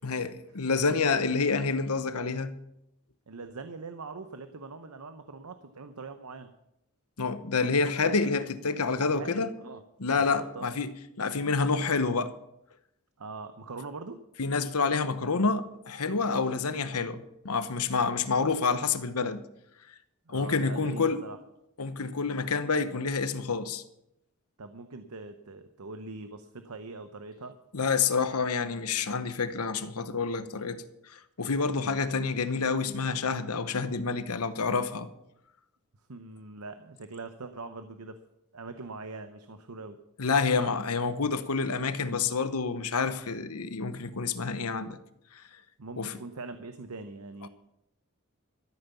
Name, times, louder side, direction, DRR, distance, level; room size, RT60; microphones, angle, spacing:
voice 1, 0.0-2.6 7.2-9.5 10.0-10.9 11.2-12.3 14.4-17.2 17.4-19.4 20.3-21.2 21.8-23.8 27.7-30.8 31.1-35.1 40.2-45.0 45.3-45.4 46.0-46.2 47.4-47.5, left 4 dB, 85° left, 1.0 m, -28 dB
voice 2, 3.3-6.5 9.1-9.8 10.2-10.8 13.2-14.2 20.3-21.4 24.6-27.6 30.4-30.6 31.8-32.0 36.1-38.2 38.5-40.0 40.6-40.7 45.8-47.5, right 3 dB, 80° right, 0.9 m, -42 dB
13.5 x 9.2 x 7.0 m
head